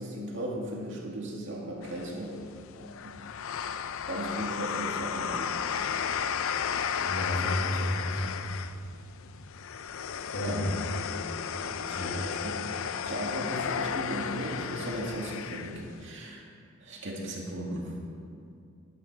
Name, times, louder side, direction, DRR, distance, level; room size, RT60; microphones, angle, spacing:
voice 1, 0.0-2.4 3.0-3.2 4.1-5.5 10.4-10.7 11.5-12.8 13.0-16.4 16.8-17.9, right 1 dB, 55° right, -2 dB, 2.3 m, -36 dB
sound 1, 1.8-16.1, left 7 dB, 65° left, 0.4 m, -34 dB
voice 2, 7.0-8.4 10.3-10.8 11.9-12.1, left 1 dB, 85° left, 0 dB, 1.8 m, -32 dB
13.0 x 10.0 x 4.8 m, 2.4 s
head